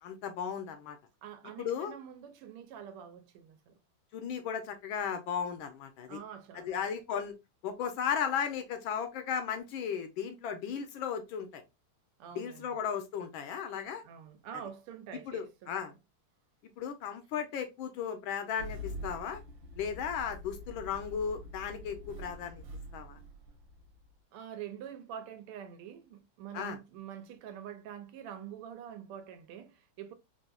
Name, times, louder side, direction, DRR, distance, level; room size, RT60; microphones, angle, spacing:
voice 1, 0.0-1.0 1.6-1.9 4.1-6.2 6.5-7.3 7.6-11.6 12.3-14.0 15.3-15.9 16.8-19.4 19.8-22.6 22.9-23.2 26.5-26.8, left 7 dB, 75° left, 1.3 m, -35 dB
voice 2, 1.2-3.8 6.1-6.8 12.2-12.7 14.0-15.7 24.3-30.1, right 9 dB, 85° right, 1.5 m, -46 dB
Engine starting, 18.6-24.1, equal, 65° right, 1.5 m, -45 dB
4.2 x 2.5 x 2.3 m
omnidirectional pair, 2.4 m